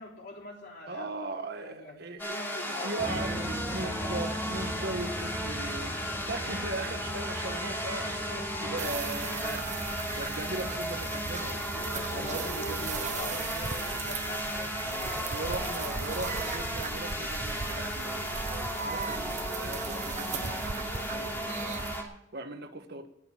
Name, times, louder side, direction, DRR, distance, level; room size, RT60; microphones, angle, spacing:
voice 1, 0.0-1.1 1.6-2.0 2.3-4.2 11.7-15.9, left 2 dB, 55° left, 0 dB, 3.6 m, -44 dB
voice 2, 0.9-2.4 2.8-11.6 12.1-13.0 14.8-23.1, right 2 dB, 55° right, 6 dB, 1.4 m, -39 dB
sound 1, 2.2-22.0, equal, 10° left, 2.8 m, -35 dB
sound 2, 3.0-13.0, equal, 10° right, 1.8 m, -40 dB
sound 3, 8.8-22.0, right 5 dB, 40° right, 0.7 m, -38 dB
19.0 x 6.7 x 7.3 m, 0.81 s
head